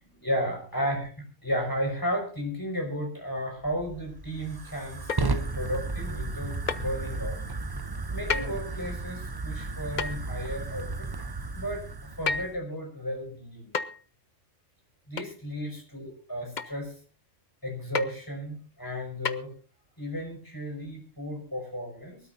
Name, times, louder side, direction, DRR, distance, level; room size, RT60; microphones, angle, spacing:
voice 1, 0.2-1.1 1.4-7.4 8.1-10.9 11.5-11.9 12.2-13.7 15.1-16.9 17.6-19.5 20.0-22.2, equal, 15° left, 1 dB, 5.3 m, -33 dB
Fire, 3.6-12.6, right 3 dB, 25° right, 0.6 m, -34 dB
sound 1, 5.1-5.4 6.7-6.9 8.3-8.5 10.0-10.2 12.3-12.6 13.7-14.0 15.2-15.3 16.6-16.8 17.9-18.1 19.3-19.4, left 5 dB, 45° left, 0.8 m, -30 dB
24.0 x 13.0 x 2.6 m, 0.39 s
omnidirectional pair, 1.3 m